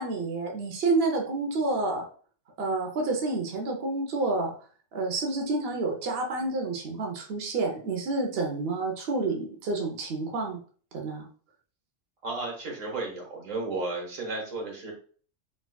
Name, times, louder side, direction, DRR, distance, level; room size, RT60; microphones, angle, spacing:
voice 1, 0.0-2.0 2.6-4.5 4.9-10.6 10.9-11.3, right 3 dB, 55° right, 2 dB, 0.9 m, -29 dB
voice 2, 12.2-14.9, right 3 dB, 85° right, -1 dB, 1.6 m, -33 dB
5.0 x 2.3 x 2.2 m, 0.43 s
omnidirectional pair, 1.3 m